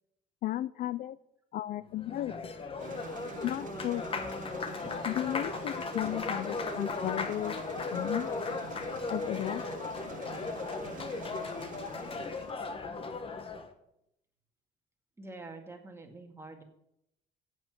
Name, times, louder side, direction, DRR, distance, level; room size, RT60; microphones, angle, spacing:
voice 1, 0.4-1.2 1.5-2.5 3.4-4.0 5.0-7.6 7.9-8.3 9.1-9.6, left 13 dB, 55° left, 17 dB, 0.4 m, -34 dB
Applause, 1.9-13.7, left 4 dB, 35° left, 1.2 m, -37 dB
sound 1, 2.8-12.5, right 8 dB, 50° right, 1.1 m, -47 dB
voice 2, 15.2-16.6, right 3 dB, 15° right, 3 dB, 2.0 m, -46 dB
8.4 x 8.0 x 7.5 m, 0.80 s
cardioid pair, 110°, 17 cm